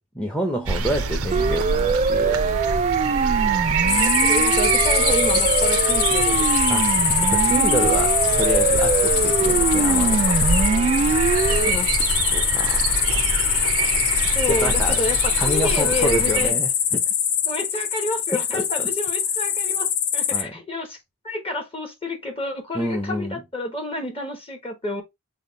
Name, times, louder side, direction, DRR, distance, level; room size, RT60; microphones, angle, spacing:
voice 1, 0.1-2.9 6.7-7.0 7.3-11.1 12.3-13.0 14.5-15.0 15.4-17.1 18.3-18.9 20.3-20.5 22.7-23.4, equal, 5° left, 0.8 m, -28 dB
sound 1, 0.7-16.5, right 5 dB, 70° right, 0.6 m, -26 dB
Siren, 1.3-11.7, right 5 dB, 30° right, 0.3 m, -22 dB
voice 2, 3.8-6.5 11.5-11.9 14.3-16.6 17.4-21.0 21.2-25.0, left 1 dB, 25° left, 1.2 m, -29 dB
sound 2, 3.9-20.4, left 8 dB, 80° left, 0.9 m, -23 dB
5.6 x 2.4 x 4.0 m
head